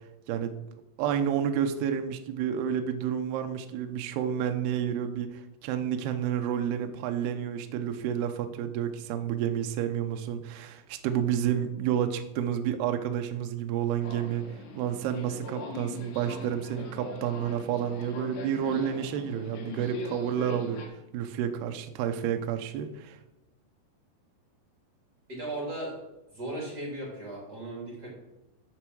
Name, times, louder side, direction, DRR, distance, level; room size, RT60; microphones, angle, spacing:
voice 1, 1.0-14.5 14.8-20.8 21.1-23.2, right 9 dB, 85° right, 6 dB, 2.3 m, -30 dB
Subway metro underground, 14.0-20.9, left 3 dB, 85° left, 4.3 m, -41 dB
voice 2, 25.3-25.9 26.3-28.1, right 1 dB, 30° right, -3 dB, 2.1 m, -36 dB
8.3 x 8.0 x 6.2 m, 0.95 s
omnidirectional pair, 5.8 m